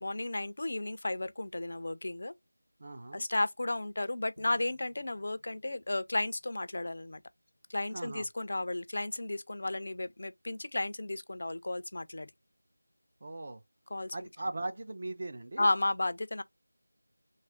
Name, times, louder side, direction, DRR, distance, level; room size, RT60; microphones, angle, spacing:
voice 1, 0.0-2.3 3.1-7.2 7.7-12.3 13.9-14.2 15.6-16.4, left 2 dB, 45° left, 0.4 m, -33 dB
voice 2, 2.8-3.3 7.9-8.3 13.2-13.6 14.1-15.7, right 2 dB, 35° right, 0.4 m, -39 dB
sound 1, 4.4-7.9, left 1 dB, 50° right, 1.0 m, -65 dB
3.2 x 2.4 x 3.4 m
figure-of-eight pair, 175°, 0 cm